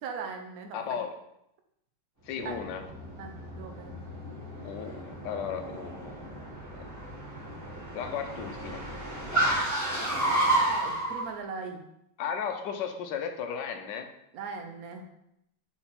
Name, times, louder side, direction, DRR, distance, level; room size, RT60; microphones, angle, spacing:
voice 1, 0.0-1.0 2.4-2.6 3.2-3.9 9.8-11.8 14.3-15.0, right 5 dB, 60° right, 4 dB, 1.0 m, -40 dB
voice 2, 0.7-1.2 2.2-2.9 4.6-6.5 6.8-6.9 7.9-8.9 12.2-14.1, left 7 dB, 70° left, 6 dB, 1.2 m, -35 dB
Car, 2.3-11.2, right 1 dB, 10° right, 1.6 m, -32 dB
4.4 x 4.3 x 5.7 m, 0.79 s
omnidirectional pair, 2.3 m